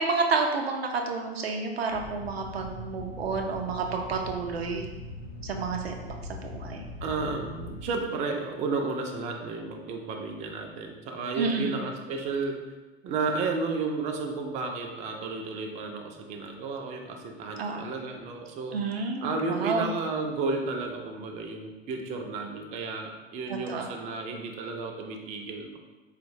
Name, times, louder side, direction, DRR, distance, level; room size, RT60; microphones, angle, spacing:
voice 1, 0.0-4.9 5.4-6.8 11.4-11.8 17.6-17.9 18.7-19.9 23.5-23.9, right 4 dB, 75° right, 2 dB, 0.5 m, -30 dB
sound 1, 1.9-7.9, left 1 dB, 90° left, 0.6 m, -41 dB
voice 2, 7.0-12.6 13.0-18.7 19.2-25.8, right 4 dB, 25° right, 2 dB, 0.3 m, -32 dB
4.1 x 2.1 x 2.6 m, 1.1 s
figure-of-eight pair, 75°, 31 cm